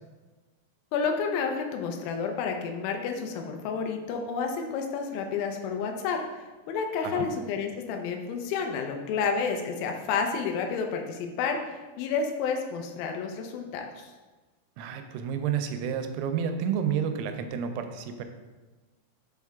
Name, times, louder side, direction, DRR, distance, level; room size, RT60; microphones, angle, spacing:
voice 1, 0.9-14.1, left 5 dB, 80° left, 3 dB, 2.3 m, -30 dB
voice 2, 14.8-18.2, right 7 dB, 90° right, 7 dB, 2.6 m, -30 dB
6.3 x 4.6 x 3.5 m, 1.2 s
omnidirectional pair, 4.6 m